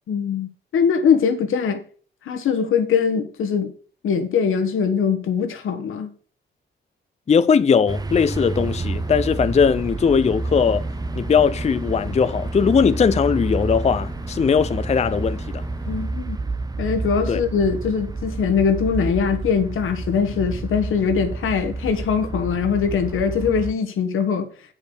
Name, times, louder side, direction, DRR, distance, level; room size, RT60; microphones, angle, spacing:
voice 1, 0.1-1.8 2.2-3.7 4.0-6.1 15.9-16.4 16.8-24.5, left 6 dB, 85° left, 1.4 m, -22 dB
voice 2, 7.3-10.8 11.2-15.6 17.3-17.4, left 6 dB, 35° left, 0.5 m, -19 dB
sound 1, 7.9-23.7, right 3 dB, 20° right, 0.6 m, -29 dB
sound 2, 8.5-16.1, left 2 dB, 10° left, 1.3 m, -39 dB
8.3 x 5.3 x 6.2 m
cardioid pair, 70°, 21 cm